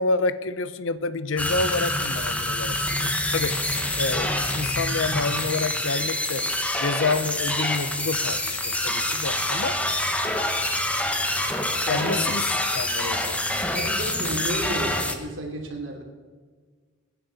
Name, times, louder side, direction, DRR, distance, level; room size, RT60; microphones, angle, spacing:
voice 1, 0.0-3.6 4.0-6.5 6.8-9.8 11.9-13.4, left 3 dB, 75° left, 14 dB, 0.7 m, -28 dB
sound 1, 1.4-15.1, left 1 dB, 5° left, 1.1 m, -26 dB
voice 2, 11.9-12.2 13.7-16.0, right 1 dB, 70° right, 0 dB, 3.2 m, -32 dB
23.5 x 10.0 x 4.1 m, 1.5 s
head